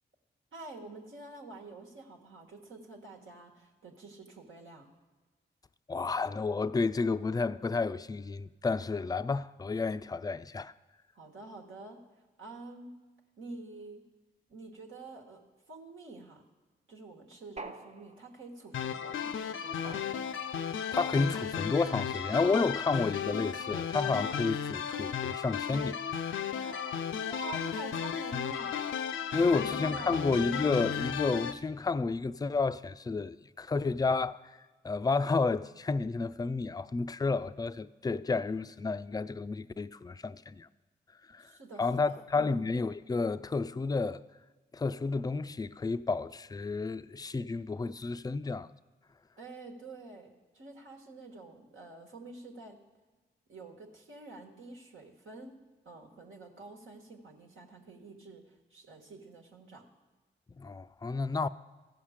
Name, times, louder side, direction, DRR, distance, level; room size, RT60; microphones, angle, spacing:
voice 1, 0.5-4.9 11.1-12.0 12.4-12.9 13.4-14.0 14.5-16.4 16.9-19.8 26.6-28.8 29.3-30.3 41.4-42.7 49.4-52.8 53.5-55.6 55.8-59.9, right 3 dB, 75° right, 1.4 m, -48 dB
voice 2, 5.9-10.7 20.9-26.0 29.3-34.4 34.8-40.7 41.3-41.5 41.8-44.2 44.7-48.7 60.5-61.5, left 4 dB, 20° left, 0.4 m, -31 dB
sound 1, 17.6-18.6 19.8-20.7, right 3 dB, 30° right, 0.7 m, -47 dB
sound 2, 18.7-31.5, left 8 dB, 75° left, 0.5 m, -34 dB
14.5 x 5.7 x 5.0 m
supercardioid pair, 40°, 21 cm